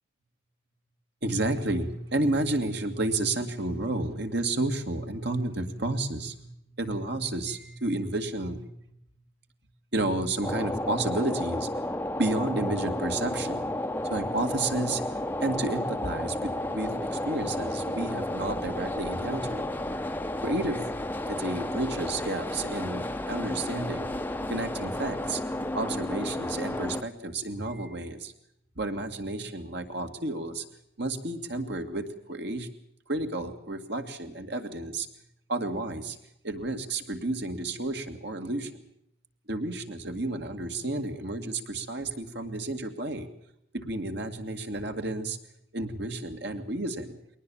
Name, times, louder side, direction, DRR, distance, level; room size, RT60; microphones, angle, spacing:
voice 1, 1.2-6.5 6.8-8.7 9.9-11.7 12.2-13.7 14.1-19.6 20.4-21.0 21.3-24.1 24.5-25.5 25.7-28.3 28.8-30.6 31.0-32.7 33.1-35.1 35.5-36.2 36.4-38.8 39.5-43.3 43.8-45.4 45.7-47.2, right 2 dB, 55° right, 6 dB, 2.2 m, -31 dB
sound 1, 10.4-27.0, left 1 dB, 10° left, 0.8 m, -32 dB
21.5 x 19.0 x 7.1 m, 0.77 s
head